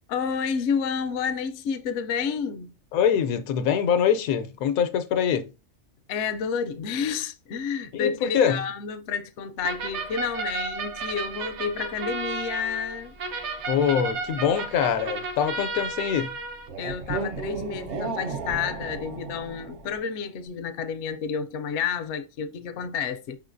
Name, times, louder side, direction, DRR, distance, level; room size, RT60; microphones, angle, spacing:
voice 1, 0.1-2.7 6.1-13.1 16.8-23.4, left 6 dB, 65° left, 0.8 m, -30 dB
voice 2, 2.9-5.5 7.9-8.6 13.7-16.3, left 8 dB, 85° left, 1.1 m, -24 dB
sound 1, 9.6-20.0, right 3 dB, 60° right, 1.0 m, -33 dB
5.5 x 3.7 x 2.5 m
omnidirectional pair, 1.5 m